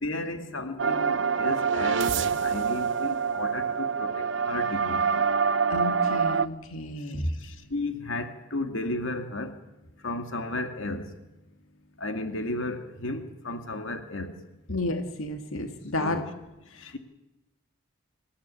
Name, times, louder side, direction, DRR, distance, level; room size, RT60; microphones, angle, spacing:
voice 1, 0.0-5.2 7.2-9.5 10.0-11.1 12.0-14.4 16.0-16.2 16.8-17.0, left 2 dB, 70° left, 6 dB, 2.4 m, -34 dB
sound 1, 0.8-6.5, right 6 dB, 60° right, 0.9 m, -26 dB
voice 2, 5.7-7.3 14.7-16.2 16.7-17.0, left 1 dB, 85° left, 5 dB, 2.2 m, -31 dB
27.0 x 16.0 x 8.6 m, 1.0 s
head